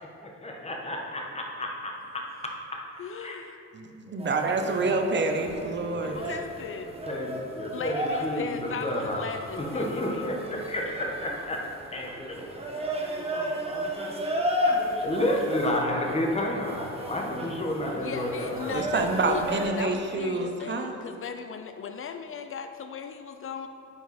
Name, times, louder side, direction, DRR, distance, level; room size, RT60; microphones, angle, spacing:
voice 1, 0.4-1.9 3.2-3.4 5.7-6.2 7.1-9.2 9.6-11.6 11.9-12.5 15.0-18.8, left 1 dB, 20° left, 0 dB, 1.2 m, -30 dB
voice 2, 3.0-3.6 6.0-6.9 7.7-10.4 15.0-15.9 17.9-23.7, left 6 dB, 45° left, 8 dB, 0.4 m, -38 dB
voice 3, 3.7-6.2 18.7-21.0, right 3 dB, 35° right, 5 dB, 0.8 m, -27 dB
sound 1, 4.2-19.7, equal, 20° right, 1.1 m, -34 dB
8.7 x 4.5 x 4.2 m, 2.7 s
cardioid pair, 90°, 30 cm